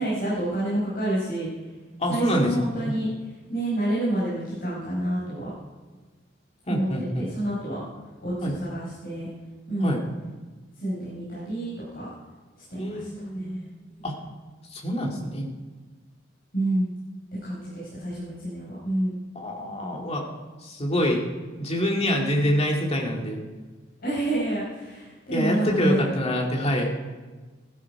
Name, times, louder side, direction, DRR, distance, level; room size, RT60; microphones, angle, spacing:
voice 1, 0.0-1.5 2.1-3.1 3.5-5.5 6.7-6.9 7.1-7.8 8.2-9.3 9.7-10.0 10.8-11.7 11.9-12.1 12.7-13.1 13.3-13.7 16.5-16.9 17.4-19.1 24.0-26.0, right 1 dB, 50° left, -9 dB, 5.1 m, -28 dB
voice 2, 2.0-2.5 2.8-2.9 6.7-7.3 8.4-8.5 9.8-10.0 12.8-13.6 14.0-14.1 14.7-15.4 19.4-20.2 20.6-21.2 21.6-23.4 25.3-26.9, equal, 35° left, 0 dB, 2.2 m, -26 dB
16.0 x 12.5 x 4.8 m, 1.3 s
head